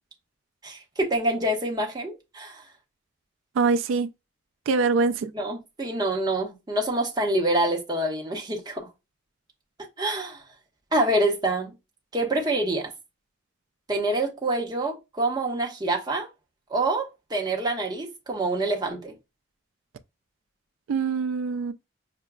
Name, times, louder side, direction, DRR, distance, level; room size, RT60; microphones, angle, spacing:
voice 1, 0.6-2.6 5.3-8.9 10.0-10.4 10.9-11.7 12.1-12.9 13.9-16.3 16.7-19.1, right 1 dB, 20° right, 0.8 m, -26 dB
voice 2, 3.6-4.1 4.7-5.3 20.9-21.7, right 4 dB, 75° right, 0.3 m, -23 dB
5.8 x 2.2 x 2.2 m
head